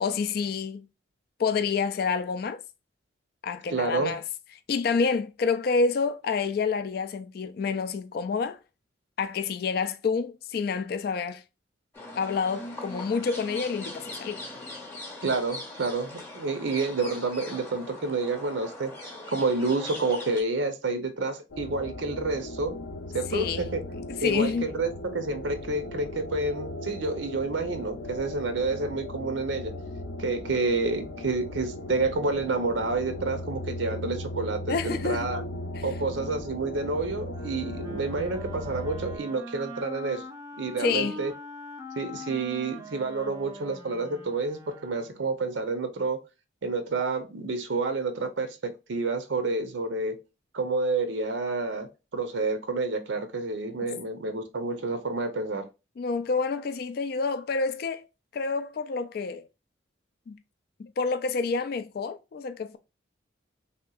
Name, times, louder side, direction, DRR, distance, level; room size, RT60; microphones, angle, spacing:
voice 1, 0.0-0.9 1.4-2.6 3.4-4.2 4.7-8.6 9.2-11.4 12.1-14.4 23.3-23.6 23.9-24.7 34.7-35.3 35.8-35.9 40.8-41.2 56.0-58.0 58.3-59.4 60.3-60.4 60.8-62.8, left 5 dB, 50° left, 0.3 m, -28 dB
voice 2, 3.7-4.1 15.2-18.9 19.3-22.7 23.1-23.8 24.2-29.7 30.2-35.4 35.8-40.2 40.6-41.3 42.0-46.2 46.6-50.2 50.5-55.7, right 3 dB, 75° right, 0.6 m, -29 dB
sound 1, 11.9-20.4, left 2 dB, 10° left, 0.8 m, -40 dB
sound 2, 21.5-39.2, left 1 dB, 90° left, 0.6 m, -37 dB
Wind instrument woodwind instrument, 37.3-45.4, equal, 15° right, 0.6 m, -42 dB
3.3 x 2.8 x 2.2 m
head